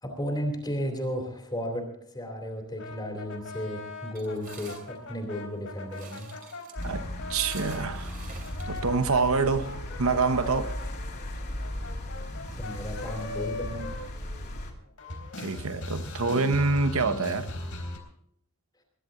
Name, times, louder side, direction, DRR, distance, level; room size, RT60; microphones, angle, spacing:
voice 1, 0.0-1.8 2.1-6.3 12.6-13.9, equal, 20° left, 2.7 m, -34 dB
sound 1, 2.8-7.9 8.4-14.7 15.0-18.0, left 2 dB, 65° left, 3.8 m, -40 dB
sound 2, 4.2-9.5, right 4 dB, 40° right, 2.8 m, -48 dB
sound 3, 6.8-14.7, left 1 dB, 50° left, 2.6 m, -36 dB
voice 2, 7.3-8.1 8.7-10.7 15.4-17.5, right 4 dB, 70° right, 0.9 m, -26 dB
21.5 x 11.0 x 3.8 m
head